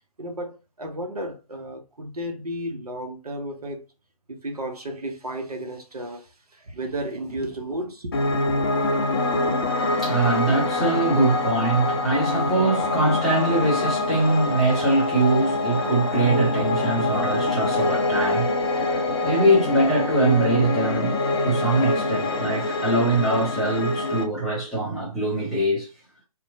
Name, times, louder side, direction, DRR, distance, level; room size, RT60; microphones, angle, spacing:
voice 1, 0.2-3.8 4.3-8.7, right 1 dB, 75° right, 0.8 m, -33 dB
Piano, 8.1-24.2, left 2 dB, 40° left, 0.6 m, -25 dB
voice 2, 9.8-25.9, right 2 dB, ahead, 0.7 m, -23 dB
2.8 x 2.2 x 2.5 m
figure-of-eight pair, 140°, 20 cm